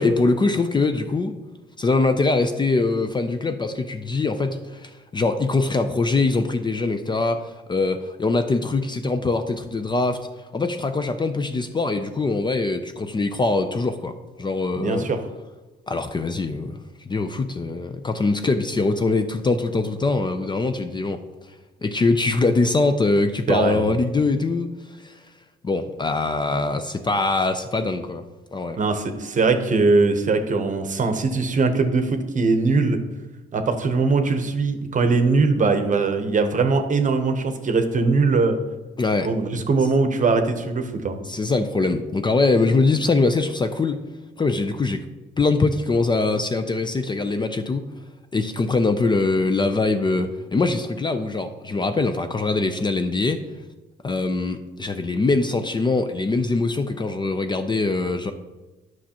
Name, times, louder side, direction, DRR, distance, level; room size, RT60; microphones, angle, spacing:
voice 1, 0.0-1.4 1.8-10.3 10.5-15.1 15.9-16.8 17.1-21.2 21.8-24.7 25.0-25.2 25.6-28.3 28.5-28.8 39.0-39.3 41.3-44.0 44.4-45.0 45.4-47.9 48.3-53.4 54.0-58.3, left 3 dB, 25° left, 8 dB, 0.4 m, -23 dB
voice 2, 14.7-15.2 23.5-23.8 28.8-33.0 33.5-38.6 39.2-41.2, right 4 dB, 40° right, 8 dB, 0.8 m, -21 dB
9.8 x 6.1 x 2.9 m, 1.2 s
cardioid pair, 90°, 20 cm